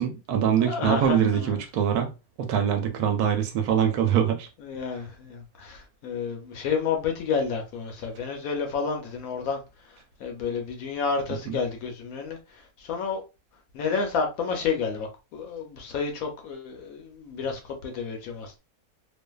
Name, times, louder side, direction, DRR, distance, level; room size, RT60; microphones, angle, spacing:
voice 1, 0.0-2.1 2.4-4.5 11.5-11.6, right 8 dB, 75° right, 1.1 m, -23 dB
voice 2, 0.5-1.6 4.6-9.6 9.9-13.2 13.7-18.6, left 5 dB, 70° left, 1.0 m, -30 dB
2.6 x 2.4 x 2.2 m
omnidirectional pair, 1.6 m